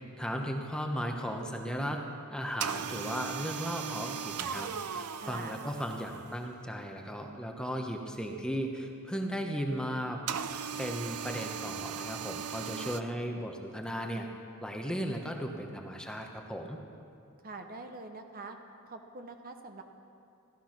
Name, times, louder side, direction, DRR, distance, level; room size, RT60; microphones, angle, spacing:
voice 1, 0.2-2.0 2.3-10.2 10.5-14.3 14.6-16.8, equal, 5° left, 2 dB, 1.0 m, -36 dB
sound 1, 2.6-6.5 10.3-13.0, right 7 dB, 90° right, 0.6 m, -38 dB
voice 2, 5.2-5.6 12.6-13.0 17.4-18.6 18.9-19.8, right 3 dB, 40° right, 5 dB, 0.9 m, -45 dB
15.0 x 13.5 x 5.9 m, 2.5 s
head